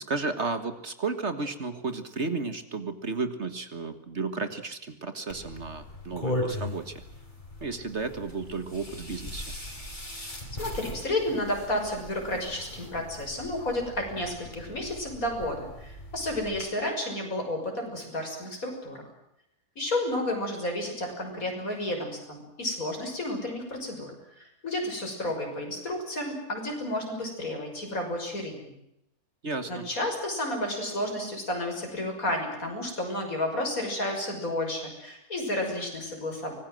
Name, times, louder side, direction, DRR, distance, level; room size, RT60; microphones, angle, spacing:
voice 1, 0.0-7.0 7.6-9.5 29.4-29.9, right 4 dB, 50° right, 9 dB, 1.9 m, -33 dB
sound 1, 5.3-16.7, left 1 dB, 30° left, 4.8 m, -39 dB
voice 2, 10.6-19.0 19.8-28.7 29.7-36.6, left 1 dB, 70° left, 2 dB, 6.7 m, -31 dB
24.5 x 20.0 x 7.8 m, 0.82 s
omnidirectional pair, 1.5 m